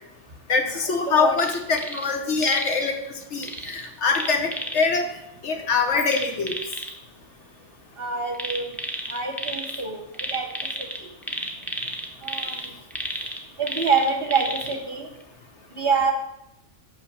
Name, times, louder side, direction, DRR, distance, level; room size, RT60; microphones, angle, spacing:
voice 1, 0.5-5.1 5.4-6.5, left 4 dB, 55° left, 5 dB, 1.0 m, -24 dB
sound 1, 1.3-2.1 2.4-2.9 3.4-4.9 6.1-6.9 8.3-9.8 10.1-14.8 15.2-15.3, equal, ahead, 0.5 m, -32 dB
voice 2, 8.0-8.7 9.1-10.0 10.3-10.5 12.2-12.5 13.6-15.1 15.7-16.1, right 5 dB, 45° right, 4 dB, 0.9 m, -25 dB
5.7 x 5.6 x 6.6 m, 0.84 s
omnidirectional pair, 1.6 m